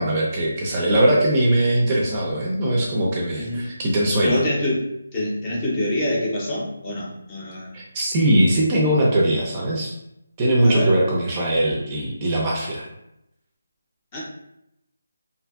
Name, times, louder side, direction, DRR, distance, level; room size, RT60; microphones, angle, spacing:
voice 1, 0.0-4.4 7.7-9.9 10.4-12.9, right 1 dB, 25° right, -3 dB, 0.5 m, -20 dB
voice 2, 4.2-4.8 5.1-7.7 10.6-10.9 14.1-14.2, left 1 dB, 25° left, -5 dB, 0.7 m, -25 dB
2.7 x 2.4 x 2.3 m, 0.83 s
figure-of-eight pair, 160°, 0 cm